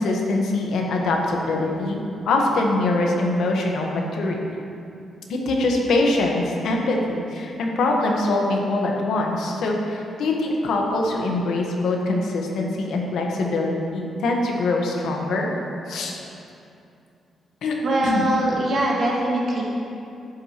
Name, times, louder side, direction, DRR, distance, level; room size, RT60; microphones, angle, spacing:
voice 1, 0.0-2.0 2.2-4.4 5.3-15.5 15.9-16.2 17.6-17.7 18.0-18.3, left 2 dB, 80° left, 0 dB, 1.2 m, -23 dB
voice 2, 17.8-19.6, right 1 dB, 45° right, -4 dB, 1.7 m, -22 dB
11.5 x 8.7 x 3.0 m, 2.6 s
wide cardioid pair, 170°, 0 cm